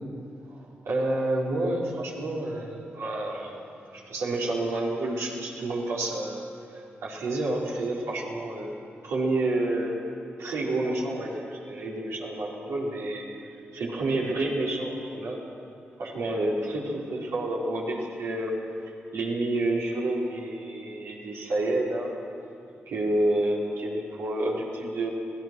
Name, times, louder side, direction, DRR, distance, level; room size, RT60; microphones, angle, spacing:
voice 1, 0.5-6.4 6.7-10.0 10.4-13.3 13.7-15.4 16.0-18.5 19.1-22.1 22.9-25.1, right 2 dB, 85° right, -4 dB, 4.5 m, -29 dB
27.0 x 19.0 x 6.3 m, 2.6 s
cardioid pair, 50°, 5 cm